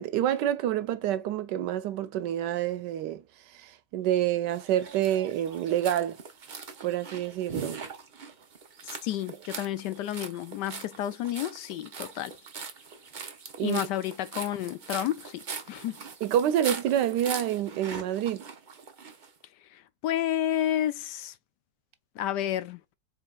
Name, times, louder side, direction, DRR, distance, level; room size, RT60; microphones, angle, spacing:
voice 1, 0.0-3.2 3.5-6.2 6.8-7.8 13.6-13.8 16.2-18.5, right 11 dB, 85° right, 1.3 m, -28 dB
sound 1, 4.5-19.3, right 5 dB, 45° right, 0.6 m, -41 dB
voice 2, 9.0-12.3 13.6-16.0 19.7-21.3 22.2-22.8, left 12 dB, 80° left, 1.2 m, -31 dB
3.9 x 3.9 x 2.3 m
omnidirectional pair, 1.8 m